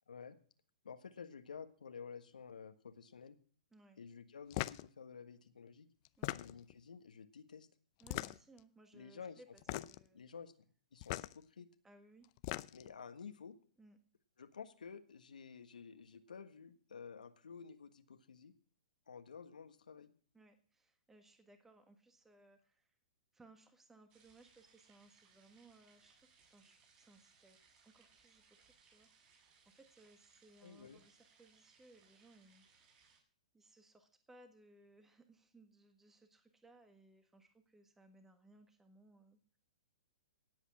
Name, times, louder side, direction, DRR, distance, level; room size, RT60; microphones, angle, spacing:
voice 1, 0.1-0.4 0.8-3.4 4.0-5.9 6.3-7.7 8.9-9.4 9.7-9.8 10.1-10.5 10.9-11.7 12.7-13.6 14.4-18.5 19.1-20.1 30.6-31.0, left 6 dB, 85° left, 8 dB, 1.5 m, -52 dB
sound 1, 4.5-4.9 6.0-6.7 8.0-8.6 9.6-10.1 11.0-11.3 12.2-12.9, left 19 dB, 40° left, 0.6 m, -40 dB
voice 2, 8.0-10.2 11.8-12.3 13.8-14.0 20.3-22.9 23.3-27.6 27.8-32.7 33.5-39.4, right 2 dB, 10° right, 7 dB, 1.6 m, -64 dB
sound 2, 24.1-33.2, right 5 dB, 35° right, 7.7 m, -69 dB
17.5 x 8.3 x 6.2 m, 0.44 s
hypercardioid pair, 130°, 4 cm